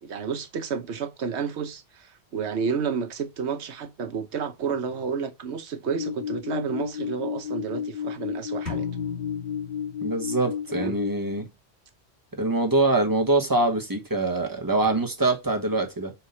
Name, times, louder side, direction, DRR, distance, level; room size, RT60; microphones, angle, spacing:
voice 1, 0.0-8.9 10.7-11.0, right 6 dB, 85° right, 1.2 m, -31 dB
sound 1, 5.9-11.1, left 8 dB, 45° left, 0.7 m, -32 dB
sound 2, 8.7-10.5, left 6 dB, 75° left, 2.1 m, -36 dB
voice 2, 10.0-11.5 12.3-16.1, right 2 dB, 20° right, 1.2 m, -24 dB
5.6 x 4.6 x 5.6 m
omnidirectional pair, 1.1 m